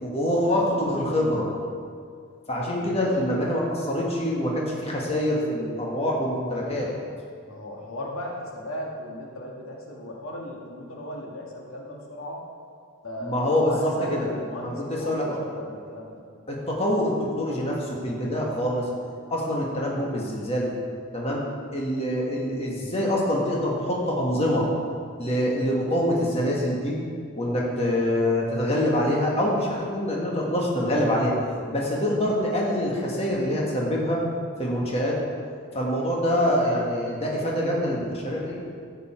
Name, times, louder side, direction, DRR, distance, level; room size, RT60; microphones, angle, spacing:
voice 1, 0.0-1.5 2.5-6.9 13.2-14.3 14.6-15.2 16.5-18.9 19.3-20.7 21.1-21.4 21.7-24.7 25.2-27.0 27.3-31.3 31.7-34.2 34.6-35.2 35.7-38.6, left 1 dB, 30° left, -3 dB, 1.7 m, -25 dB
voice 2, 2.5-3.1 7.5-12.4 13.0-16.2, left 1 dB, 80° left, -2 dB, 1.7 m, -36 dB
12.5 x 8.3 x 4.5 m, 2.2 s
head